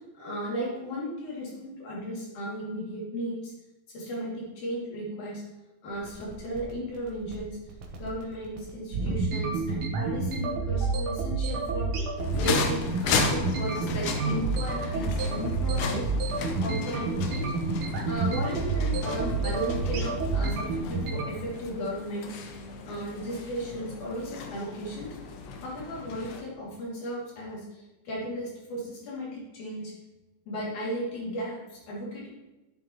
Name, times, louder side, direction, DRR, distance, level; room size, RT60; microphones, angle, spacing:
voice 1, 0.1-3.5 3.9-5.4 5.8-7.6 8.0-11.9 12.4-16.1 16.5-17.5 18.0-22.3 22.8-25.1 25.6-29.9 30.5-32.3, equal, 70° left, -5 dB, 4.2 m, -35 dB
sound 1, 5.9-21.3, right 4 dB, 60° right, 1.5 m, -29 dB
sound 2, 12.2-26.4, left 5 dB, 85° left, 2.5 m, -34 dB
11.0 x 8.3 x 3.1 m, 1.1 s
omnidirectional pair, 3.6 m